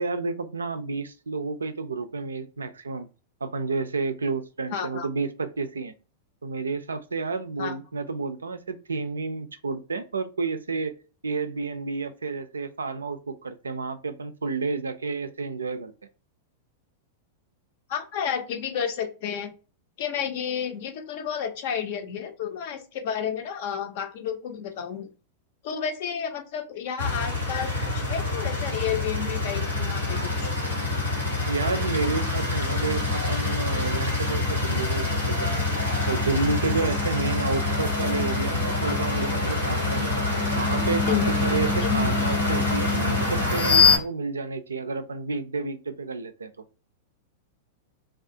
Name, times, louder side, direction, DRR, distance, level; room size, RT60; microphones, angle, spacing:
voice 1, 0.0-3.1 3.4-5.9 6.4-11.0 11.2-15.9 31.5-35.7 36.1-40.1 40.5-46.5, right 4 dB, 80° right, 10 dB, 0.3 m, -30 dB
voice 2, 4.7-5.1 7.6-7.7 17.9-19.5 20.0-25.1 25.6-30.6 41.1-41.3 41.8-42.1, left 8 dB, 55° left, 7 dB, 0.5 m, -31 dB
sound 1, 27.0-44.0, left 3 dB, 90° left, 1.1 m, -25 dB
2.3 x 2.1 x 2.6 m, 0.34 s
figure-of-eight pair, 95°, 0 cm